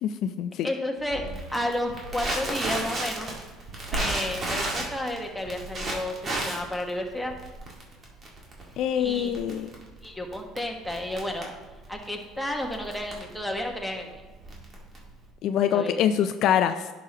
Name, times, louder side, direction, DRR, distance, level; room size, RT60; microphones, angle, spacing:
voice 1, 0.0-0.7 8.8-9.7 15.4-16.9, left 9 dB, 65° left, 9 dB, 0.4 m, -25 dB
voice 2, 0.6-1.2 1.5-3.3 3.9-7.3 9.0-9.3 10.0-11.5 11.9-14.1 15.7-16.0, left 1 dB, ahead, 1 dB, 1.3 m, -31 dB
Crackle, 1.1-15.3, right 2 dB, 40° right, 2.0 m, -35 dB
sound 1, 3.9-8.1 8.4-8.5 10.0-10.1, right 1 dB, 80° right, 1.6 m, -40 dB
10.5 x 6.0 x 2.9 m, 1.2 s
supercardioid pair, 95°, 0 cm